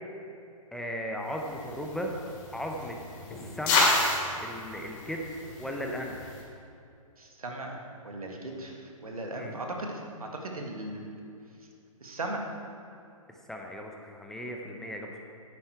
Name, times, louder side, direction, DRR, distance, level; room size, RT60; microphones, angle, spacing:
voice 1, 0.7-2.1 2.5-3.0 3.3-4.0 4.4-6.4 9.3-9.6 13.3-15.2, equal, ahead, 1 dB, 0.6 m, -36 dB
sound 1, 1.3-6.4, left 2 dB, 35° left, 2.4 m, -31 dB
voice 2, 7.2-8.8 9.0-11.2 12.0-12.4, right 2 dB, 80° right, 2 dB, 1.8 m, -37 dB
9.5 x 8.7 x 4.6 m, 2.6 s
figure-of-eight pair, 130°, 18 cm